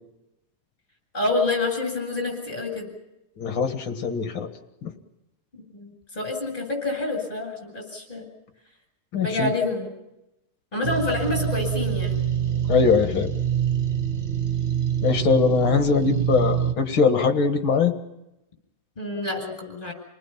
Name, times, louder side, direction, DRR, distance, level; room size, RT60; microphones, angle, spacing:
voice 1, 1.1-2.9 5.7-8.2 9.2-9.9 10.7-12.2 19.0-19.9, left 2 dB, 15° left, 3 dB, 8.2 m, -27 dB
voice 2, 3.4-4.5 4.8-4.9 9.1-9.5 12.7-13.3 15.0-17.9, left 5 dB, 45° left, 6 dB, 2.1 m, -21 dB
sound 1, 10.8-16.7, right 8 dB, 50° right, 0.7 m, -25 dB
29.5 x 20.0 x 5.8 m, 0.90 s
omnidirectional pair, 3.5 m